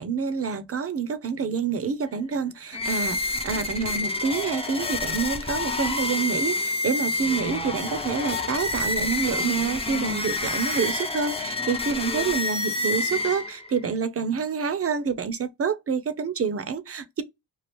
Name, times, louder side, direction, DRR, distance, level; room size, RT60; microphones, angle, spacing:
voice 1, 0.0-17.2, right 6 dB, 35° right, 0.6 m, -27 dB
sound 1, 2.7-13.8, left 3 dB, 15° left, 0.5 m, -28 dB
3.0 x 2.4 x 3.2 m
cardioid pair, 85°, 44 cm